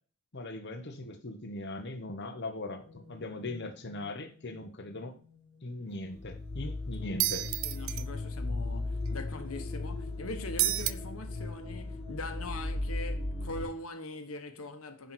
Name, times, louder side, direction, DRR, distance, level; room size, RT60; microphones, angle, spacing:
voice 1, 0.3-5.2 5.6-7.5, left 2 dB, 50° left, 1.0 m, -40 dB
sound 1, 2.8-5.6 5.9-13.6, left 2 dB, 20° left, 4.6 m, -38 dB
sound 2, 7.2-8.0 10.6-10.9, right 15 dB, 65° right, 0.5 m, -29 dB
voice 2, 7.6-15.1, left 2 dB, 75° left, 1.3 m, -42 dB
10.0 x 4.1 x 6.1 m
head